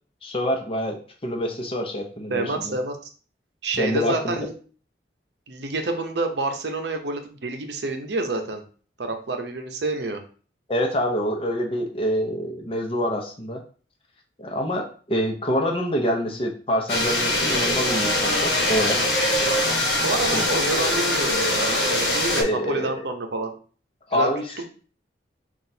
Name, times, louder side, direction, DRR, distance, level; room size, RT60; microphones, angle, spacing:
voice 1, 0.2-2.8 3.8-4.3 10.7-13.6 14.4-19.0 20.3-20.4 22.4-23.0 24.1-24.4, equal, 30° left, 2 dB, 0.7 m, -26 dB
voice 2, 2.3-3.0 3.6-4.5 5.5-8.6 9.0-10.2 20.0-23.5 24.1-24.3 24.6-24.7, right 2 dB, 65° right, 5 dB, 0.7 m, -28 dB
sound 1, 16.9-22.4, left 1 dB, 60° left, 1.1 m, -22 dB
5.9 x 2.4 x 2.7 m, 0.41 s
head